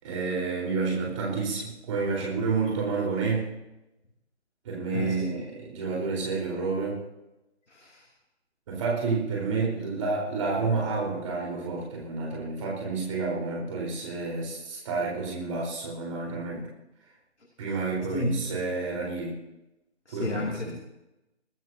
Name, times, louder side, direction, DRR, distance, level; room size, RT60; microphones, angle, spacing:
voice 1, 0.0-3.5 4.6-7.0 8.7-16.7 17.6-19.4 20.1-20.7, right 4 dB, 25° right, -3 dB, 4.2 m, -29 dB
voice 2, 4.9-5.3 7.7-8.1 18.1-18.5 20.1-20.7, left 1 dB, 80° left, 1 dB, 2.7 m, -31 dB
23.5 x 13.5 x 2.8 m, 0.94 s
figure-of-eight pair, 155°, 35 cm